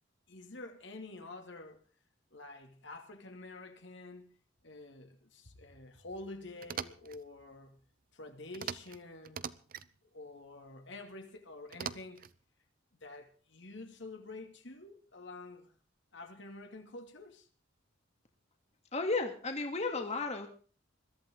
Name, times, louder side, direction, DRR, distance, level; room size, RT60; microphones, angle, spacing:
voice 1, 0.3-1.8 2.3-4.4 4.6-7.8 8.1-9.4 10.1-12.3 12.9-15.7 16.1-17.5, left 2 dB, 65° left, 2.6 m, -48 dB
sound 1, 6.6-7.2 8.5-9.0 9.2-9.9 11.7-12.4, right 7 dB, 50° right, 0.8 m, -41 dB
voice 2, 18.9-20.5, left 3 dB, 35° left, 2.5 m, -33 dB
21.5 x 14.5 x 3.9 m
head